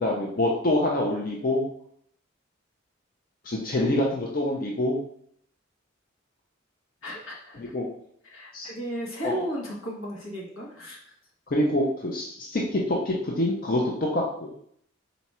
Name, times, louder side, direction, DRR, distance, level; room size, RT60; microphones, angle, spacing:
voice 1, 0.0-1.7 3.4-5.0 7.5-7.9 8.5-8.7 9.2-9.4 11.5-14.5, left 1 dB, 45° left, -2 dB, 0.5 m, -26 dB
voice 2, 7.0-7.6 8.3-11.0, equal, 80° left, -3 dB, 1.3 m, -34 dB
4.0 x 2.4 x 4.2 m, 0.67 s
head